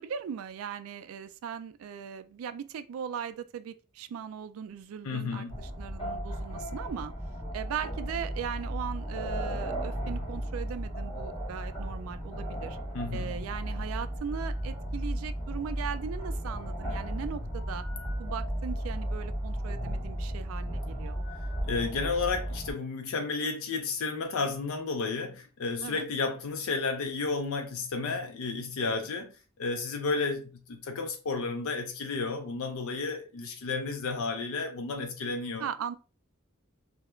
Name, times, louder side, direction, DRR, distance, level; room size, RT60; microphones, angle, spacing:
voice 1, 0.0-7.1 7.5-12.8 13.1-17.8 18.2-21.2 25.8-26.1 35.6-35.9, right 7 dB, 85° right, 0.3 m, -38 dB
voice 2, 5.0-5.6 12.9-13.4 21.6-35.7, left 4 dB, 85° left, 0.4 m, -32 dB
sound 1, 5.5-22.7, equal, 25° left, 0.9 m, -35 dB
2.3 x 2.1 x 2.9 m
head